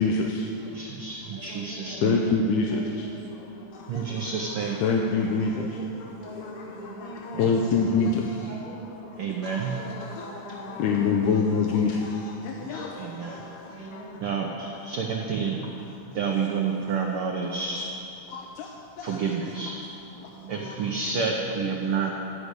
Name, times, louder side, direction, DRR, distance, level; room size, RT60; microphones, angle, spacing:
voice 1, 0.0-0.5 2.0-2.8 3.7-4.2 4.6-5.8 7.0-8.5 9.4-14.0 14.6-14.7 18.3-19.4 20.2-20.9, left 4 dB, 85° left, 2 dB, 2.1 m, -27 dB
voice 2, 0.7-2.2 3.9-4.8 7.4-7.6 9.2-9.7 12.6-13.4 14.2-15.7 16.1-17.9 19.0-19.8 20.5-22.1, right 5 dB, 85° right, 1 dB, 1.2 m, -29 dB
voice 3, 1.3-2.2 2.6-4.9 5.8-7.4 8.5-9.3 9.7-11.0 13.6-14.2 20.3-20.8, equal, 50° left, -9 dB, 4.0 m, -43 dB
12.0 x 6.2 x 8.1 m, 2.8 s
omnidirectional pair, 3.4 m